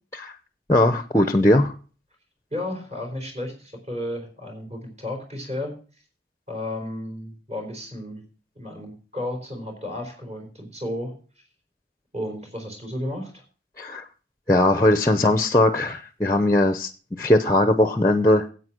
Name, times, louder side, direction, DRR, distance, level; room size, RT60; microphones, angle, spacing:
voice 1, 0.7-1.7 13.8-14.0 14.5-16.9 17.2-18.5, left 1 dB, 15° left, 10 dB, 0.7 m, -19 dB
voice 2, 2.5-5.7 6.5-8.2 8.6-11.1 12.1-13.4, left 1 dB, 40° right, 2 dB, 4.2 m, -33 dB
9.5 x 8.2 x 6.2 m, 0.39 s
head